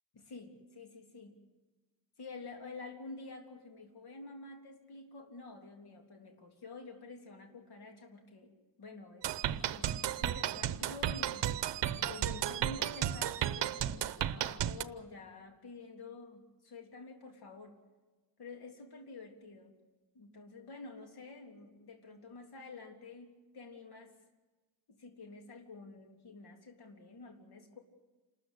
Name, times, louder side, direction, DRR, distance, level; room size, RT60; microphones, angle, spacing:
voice 1, 0.1-1.3 2.2-8.5 8.8-11.5 12.0-17.8 18.4-19.7 20.1-24.1 24.9-27.8, left 3 dB, 60° left, 4 dB, 3.4 m, -49 dB
sound 1, 9.2-14.8, right 11 dB, 70° right, 0.9 m, -33 dB
28.5 x 13.5 x 8.3 m, 1.2 s
cardioid pair, 145°, 43 cm